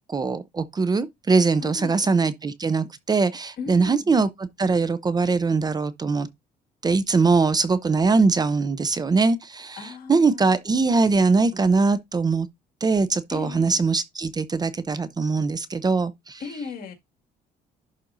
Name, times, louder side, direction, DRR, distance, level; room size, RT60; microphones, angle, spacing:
voice 1, 0.1-6.3 6.8-12.5 12.8-16.4, right 4 dB, 25° right, 0.6 m, -22 dB
voice 2, 1.6-2.1 3.6-4.2 9.8-10.6 13.3-13.8 16.4-16.9, left 4 dB, 60° left, 2.1 m, -36 dB
11.5 x 4.2 x 2.6 m
cardioid pair, 110°, 17 cm